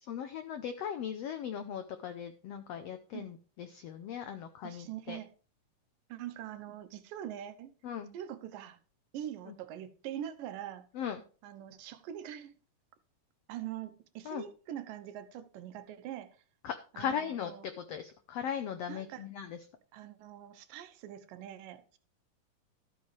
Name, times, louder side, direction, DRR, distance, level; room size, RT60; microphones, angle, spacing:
voice 1, 0.1-5.2 7.8-8.1 9.5-9.6 10.9-11.2 14.2-14.4 16.6-19.6, left 8 dB, 85° left, 1.4 m, -38 dB
voice 2, 4.6-5.3 6.1-7.7 8.1-8.8 9.1-10.9 11.4-12.5 13.5-16.4 16.9-17.7 18.9-19.3 19.9-22.0, right 11 dB, 80° right, 2.5 m, -43 dB
13.0 x 8.4 x 3.2 m
omnidirectional pair, 3.8 m